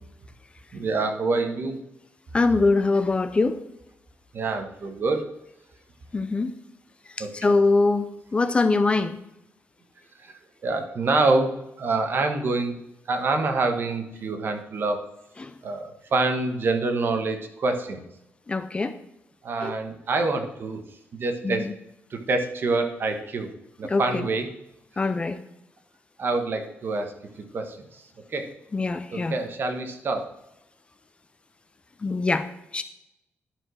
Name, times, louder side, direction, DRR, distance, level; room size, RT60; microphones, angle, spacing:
voice 1, 0.7-1.8 4.3-5.3 7.2-7.3 10.2-10.3 10.6-12.8 13.1-15.0 15.6-18.0 19.4-20.8 21.1-21.7 22.1-23.5 23.8-24.5 26.2-27.1 27.5-28.0 28.3-28.5 29.1-30.4, right 3 dB, 50° right, 6 dB, 1.4 m, -26 dB
voice 2, 2.3-3.6 6.1-6.5 7.3-9.2 15.4-15.5 18.5-18.9 19.6-19.7 21.4-21.7 23.8-24.2 25.0-25.4 28.7-29.3 32.0-32.5 32.7-32.8, left 3 dB, 25° left, 11 dB, 0.5 m, -23 dB
11.0 x 4.9 x 6.2 m, 0.84 s
wide cardioid pair, 155°, 5 cm